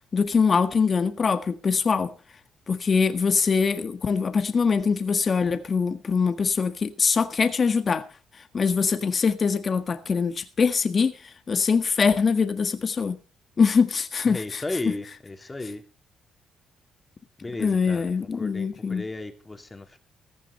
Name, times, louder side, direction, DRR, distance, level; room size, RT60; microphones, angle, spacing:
voice 1, 0.1-2.1 2.7-8.0 8.5-13.2 13.6-14.6 17.6-19.0, left 5 dB, 40° left, 1.6 m, -23 dB
voice 2, 14.2-15.8 17.4-20.0, left 2 dB, 20° left, 3.0 m, -35 dB
15.0 x 15.0 x 4.2 m
cardioid pair, 90°, 0 cm